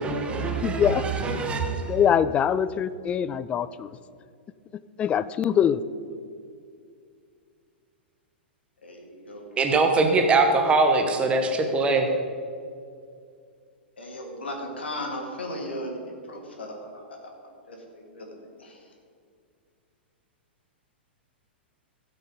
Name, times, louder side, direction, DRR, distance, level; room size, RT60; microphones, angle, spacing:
voice 1, 0.0-2.0 9.6-12.1, right 3 dB, 20° right, 4 dB, 1.1 m, -23 dB
voice 2, 0.6-1.1 1.9-3.9 5.0-5.8, left 8 dB, 20° left, 16 dB, 0.3 m, -23 dB
voice 3, 8.8-10.2 14.0-18.9, left 1 dB, 70° left, 1 dB, 2.3 m, -37 dB
15.5 x 6.7 x 5.2 m, 2.3 s
figure-of-eight pair, 105°, 6 cm